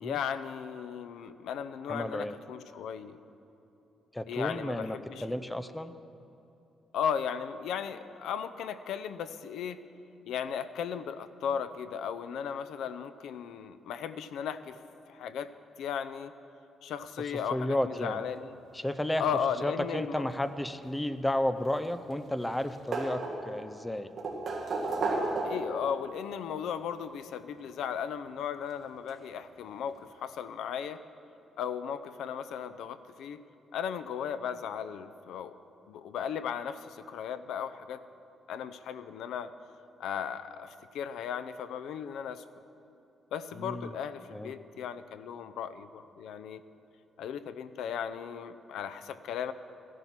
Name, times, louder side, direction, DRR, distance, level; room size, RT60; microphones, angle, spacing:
voice 1, 0.0-3.2 4.3-5.3 6.9-9.8 10.3-14.8 15.1-15.5 15.8-16.3 16.8-18.5 19.2-20.3 25.4-31.0 31.6-33.4 33.7-35.5 35.9-38.0 38.5-39.5 40.0-42.4 43.3-46.6 47.2-49.5, left 8 dB, 85° left, 12 dB, 0.6 m, -36 dB
voice 2, 1.9-2.3 4.1-5.9 17.5-18.2 18.7-19.3 19.6-24.1 43.6-43.9 44.3-44.5, left 1 dB, 5° left, 12 dB, 0.5 m, -32 dB
sound 1, 21.6-22.3 22.5-23.7 24.2-25.8 27.0-27.1 28.7-28.8 29.1-29.2, right 3 dB, 40° right, 2.0 m, -33 dB
14.5 x 11.0 x 5.8 m, 3.0 s
cardioid pair, 160°, 0 cm